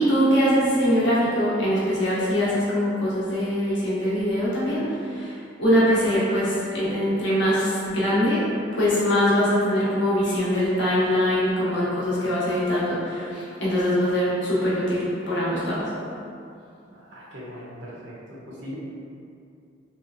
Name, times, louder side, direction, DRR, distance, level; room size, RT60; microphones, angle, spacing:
voice 1, 0.0-8.4 8.8-15.9, equal, 65° left, -9 dB, 0.9 m, -22 dB
voice 2, 16.9-18.8, equal, 65° right, -6 dB, 0.7 m, -40 dB
3.2 x 2.9 x 2.5 m, 2.5 s
head